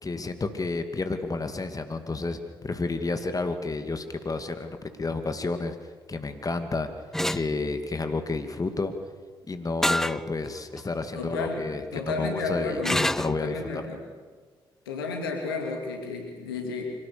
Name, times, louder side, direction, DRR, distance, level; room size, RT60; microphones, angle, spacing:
voice 1, 0.0-5.8 6.1-6.9 7.3-8.9 9.5-12.8 13.2-13.8, left 3 dB, 30° left, 8 dB, 2.3 m, -30 dB
sound 1, 7.1-7.4 9.8-10.2 10.8-10.9 12.8-13.4, equal, 5° left, 0.6 m, -25 dB
voice 2, 11.1-11.6 11.9-14.0 14.9-16.8, left 4 dB, 85° left, 3 dB, 2.6 m, -32 dB
25.0 x 18.0 x 6.8 m, 1.5 s
figure-of-eight pair, 40°, 12 cm